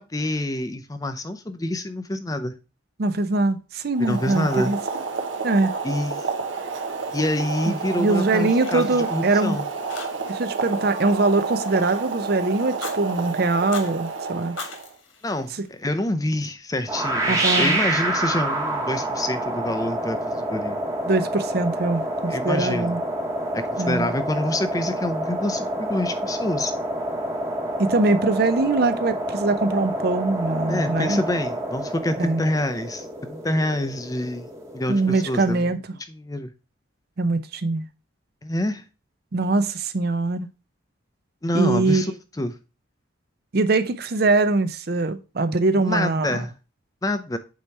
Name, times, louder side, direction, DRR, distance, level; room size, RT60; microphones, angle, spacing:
voice 1, 0.0-2.5 4.0-4.7 5.8-6.2 7.1-9.6 15.2-20.8 22.3-23.0 23.5-26.7 30.7-34.5 34.7-35.7 36.1-36.5 38.4-38.8 41.4-42.1 42.4-42.6 45.8-46.5 47.0-47.4, left 1 dB, 15° left, 0.5 m, -27 dB
voice 2, 3.0-4.8 5.4-5.7 8.0-9.6 10.3-14.6 17.3-17.8 21.1-23.0 23.8-24.1 27.8-31.2 32.2-32.4 34.9-35.8 37.2-37.8 39.3-40.5 41.5-42.1 43.5-46.4, right 3 dB, 50° right, 0.5 m, -22 dB
Boiling, 3.9-14.9, right 4 dB, 70° right, 0.9 m, -30 dB
Fire, 6.9-8.0 8.3-9.5 9.9-10.5 10.7-12.1 12.6-13.0 13.5-13.9 14.4-16.0, left 4 dB, 75° left, 1.7 m, -40 dB
sound 1, 16.9-35.7, right 1 dB, 15° right, 1.1 m, -28 dB
8.4 x 2.9 x 4.5 m
head